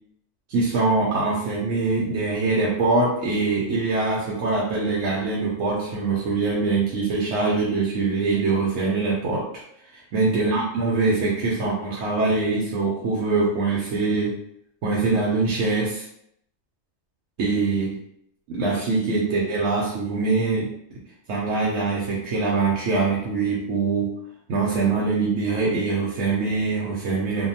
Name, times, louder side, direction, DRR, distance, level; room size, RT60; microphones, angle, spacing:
voice 1, 0.5-9.5 9.9-14.3 14.8-16.1 17.4-18.0 18.5-20.7 21.3-24.1 24.5-27.5, right 3 dB, 90° right, -5 dB, 0.9 m, -23 dB
2.6 x 2.1 x 2.6 m, 0.72 s
omnidirectional pair, 1.3 m